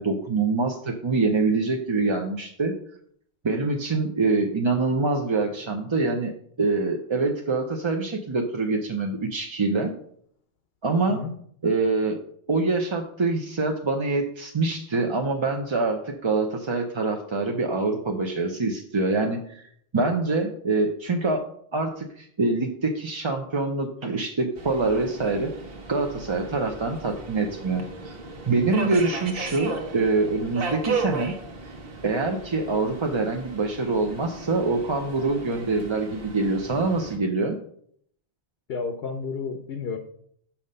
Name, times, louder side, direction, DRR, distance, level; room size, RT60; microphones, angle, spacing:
voice 1, 0.0-2.7 3.4-6.3 6.6-9.9 10.8-11.2 11.6-12.2 12.5-19.7 19.9-21.4 21.7-25.5 25.9-28.2 28.5-31.3 31.6-31.7 32.0-37.6, right 3 dB, 35° right, 3 dB, 0.6 m, -25 dB
Subway metro underground, 24.6-37.2, right 4 dB, 70° right, 1.3 m, -36 dB
voice 2, 38.7-40.0, left 5 dB, 75° left, 7 dB, 0.9 m, -31 dB
6.3 x 5.8 x 5.4 m, 0.65 s
omnidirectional pair, 1.0 m